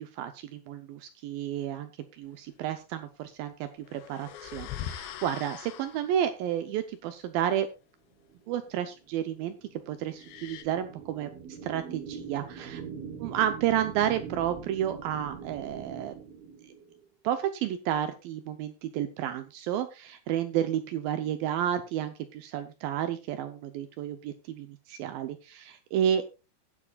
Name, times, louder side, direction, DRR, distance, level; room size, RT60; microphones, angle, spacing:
voice 1, 0.0-7.7 8.5-9.6 9.9-12.8 13.2-16.2 17.2-26.2, right 10 dB, 80° right, 9 dB, 2.1 m, -31 dB
sound 1, 3.8-6.3 10.1-10.6, left 10 dB, 80° left, 3.2 m, -41 dB
sound 2, 8.3-17.1, right 6 dB, 65° right, 3.1 m, -43 dB
20.5 x 7.5 x 2.3 m, 0.29 s
omnidirectional pair, 5.0 m